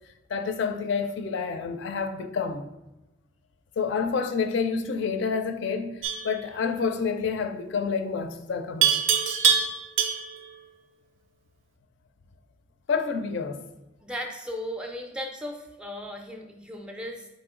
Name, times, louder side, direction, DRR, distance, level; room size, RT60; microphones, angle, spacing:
voice 1, 0.3-2.7 3.8-9.0 12.9-13.6, left 5 dB, 60° left, 0.4 m, -28 dB
Livestock farm animals working animals, 6.0-6.4 8.8-10.4, right 7 dB, 80° right, 0.5 m, -23 dB
voice 2, 14.0-17.3, equal, 5° right, 0.4 m, -36 dB
4.2 x 2.9 x 3.6 m
head